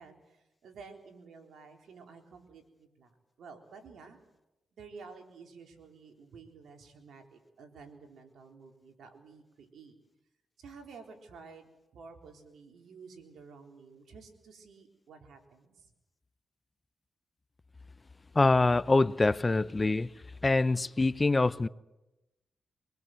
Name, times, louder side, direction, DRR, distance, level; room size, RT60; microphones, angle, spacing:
voice 1, 0.0-4.2 4.7-9.9 10.6-15.9, right 4 dB, 75° right, 3.9 m, -52 dB
voice 2, 18.3-20.1 20.4-21.7, left 3 dB, 30° left, 0.8 m, -25 dB
24.5 x 20.0 x 7.8 m
cardioid pair, 60°, 0 cm